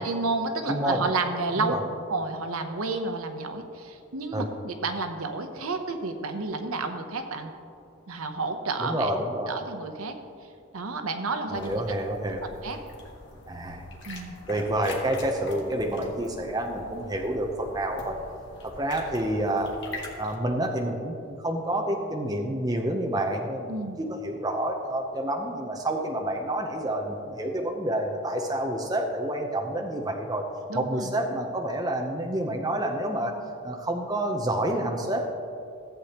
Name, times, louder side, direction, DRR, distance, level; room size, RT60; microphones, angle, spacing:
voice 1, 0.0-1.8 2.1-7.5 8.1-9.1 9.5-10.2 10.7-12.2 12.6-12.8 14.0-14.4 23.7-24.0 30.7-31.1, right 3 dB, 80° right, 6 dB, 0.8 m, -31 dB
voice 2, 0.7-1.1 1.6-1.8 4.3-4.5 8.8-9.5 11.5-12.4 13.5-13.8 14.5-18.2 18.6-19.7 20.2-30.5 30.7-33.4 33.6-35.3, right 1 dB, 15° right, 2 dB, 0.6 m, -28 dB
sound 1, 11.5-20.4, left 2 dB, 55° left, 1.5 m, -44 dB
15.0 x 8.1 x 2.9 m, 2.4 s
head